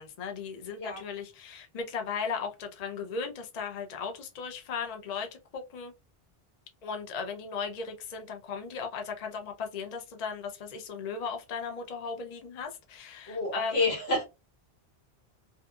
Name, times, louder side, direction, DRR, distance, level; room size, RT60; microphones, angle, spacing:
voice 1, 0.0-5.9 6.8-13.9, left 5 dB, 50° left, 0.5 m, -37 dB
voice 2, 13.3-14.2, left 2 dB, 75° left, 1.4 m, -29 dB
2.7 x 2.4 x 2.2 m
omnidirectional pair, 1.0 m